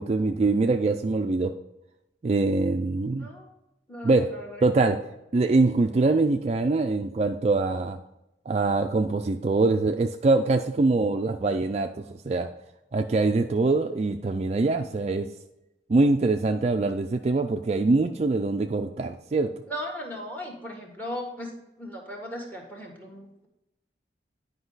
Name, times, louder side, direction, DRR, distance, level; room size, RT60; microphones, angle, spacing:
voice 1, 0.0-1.5 2.2-3.3 4.0-4.3 4.6-5.0 5.3-8.0 8.5-12.5 12.9-15.3 15.9-19.5, right 3 dB, 35° right, 6 dB, 0.3 m, -23 dB
voice 2, 3.1-3.5 3.9-4.9 19.7-21.5 21.8-23.5, equal, 10° left, 1 dB, 1.5 m, -37 dB
10.0 x 5.2 x 3.9 m, 0.89 s
head